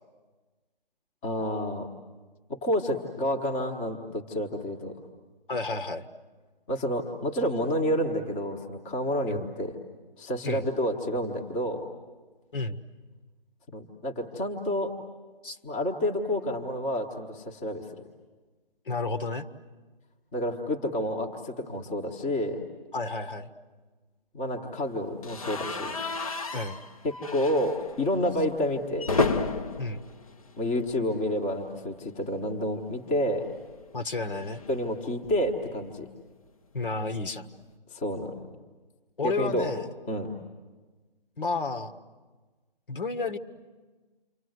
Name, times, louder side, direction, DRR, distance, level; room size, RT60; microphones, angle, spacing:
voice 1, 1.2-1.9 2.5-5.0 6.7-9.8 10.2-11.9 13.7-14.9 15.6-17.8 20.3-22.7 24.3-26.0 27.0-29.1 30.6-33.5 34.7-36.1 37.9-38.4 39.2-39.7 40.1-40.3, equal, 10° left, 1 dB, 1.2 m, -29 dB
voice 2, 5.5-6.1 9.3-9.5 10.4-10.7 12.5-12.8 15.4-15.6 18.9-19.5 22.9-23.5 26.5-26.8 29.8-30.0 33.9-34.6 36.7-37.5 39.2-39.9 41.4-41.9 42.9-43.4, left 3 dB, 60° left, 8 dB, 1.7 m, -31 dB
sound 1, 25.2-31.3 31.6-31.8 32.0-32.1 33.4-35.7, left 3 dB, 40° left, 1.0 m, -33 dB
29.0 x 25.0 x 8.0 m, 1.3 s
figure-of-eight pair, 160°, 29 cm